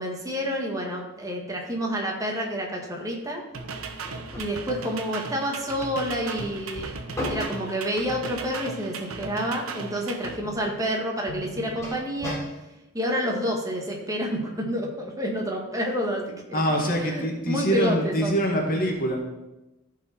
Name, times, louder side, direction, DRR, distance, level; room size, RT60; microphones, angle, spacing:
voice 1, 0.0-3.4 4.3-12.4 12.9-18.4, equal, 15° right, 0 dB, 1.8 m, -29 dB
sound 1, 3.5-10.4, right 4 dB, 80° right, 1.0 m, -37 dB
sound 2, 4.0-4.5 6.4-7.5 10.4-10.7 11.3-12.4, left 1 dB, 15° left, 2.9 m, -34 dB
voice 2, 16.5-19.2, equal, 45° left, 0 dB, 1.8 m, -24 dB
14.5 x 4.9 x 4.5 m, 0.99 s
head